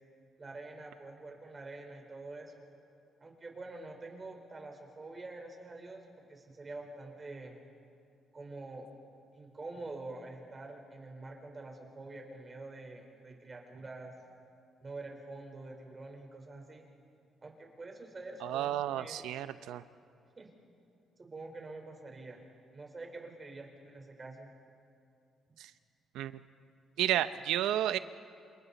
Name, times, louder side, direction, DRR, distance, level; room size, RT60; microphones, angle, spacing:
voice 1, 0.4-2.7 3.2-7.6 8.3-8.9 9.3-14.1 14.8-16.8 17.4-19.3 20.4-20.5 21.2-22.4 22.7-24.5, right 2 dB, 30° right, 2 dB, 4.3 m, -46 dB
voice 2, 18.4-19.8 25.6-25.7 26.1-26.4 27.0-28.0, right 12 dB, 90° right, 13 dB, 0.7 m, -32 dB
28.5 x 27.0 x 4.2 m, 2.4 s
cardioid pair, 90°, 0 cm